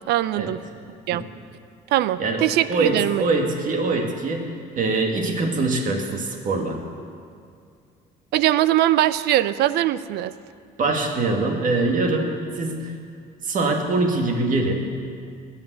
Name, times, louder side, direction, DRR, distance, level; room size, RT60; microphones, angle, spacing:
voice 1, 0.1-0.6 1.1-1.2 1.9-3.3 8.3-10.3, right 14 dB, 80° right, 15 dB, 0.5 m, -21 dB
voice 2, 2.2-6.8 10.8-12.9 13.4-14.8, right 3 dB, 50° right, 3 dB, 2.0 m, -23 dB
14.0 x 9.0 x 8.1 m, 2.3 s
cardioid pair, 110°, 17 cm